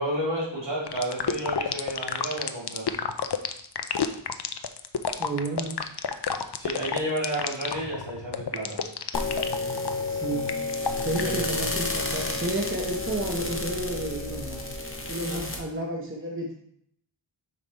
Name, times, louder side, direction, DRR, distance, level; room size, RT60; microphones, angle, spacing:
voice 1, 0.0-2.9 6.6-8.8 11.1-11.6 15.2-15.4, right 1 dB, 65° right, -5 dB, 2.5 m, -31 dB
sound 1, 0.9-11.5, left 7 dB, 55° left, 0.6 m, -30 dB
voice 2, 5.2-5.8 10.1-10.7 11.0-14.7 15.1-16.5, right 2 dB, 25° right, 0 dB, 0.9 m, -31 dB
sound 2, 9.1-15.6, left 2 dB, 25° left, 1.1 m, -31 dB
5.4 x 4.9 x 4.1 m, 0.68 s
wide cardioid pair, 50°, 47 cm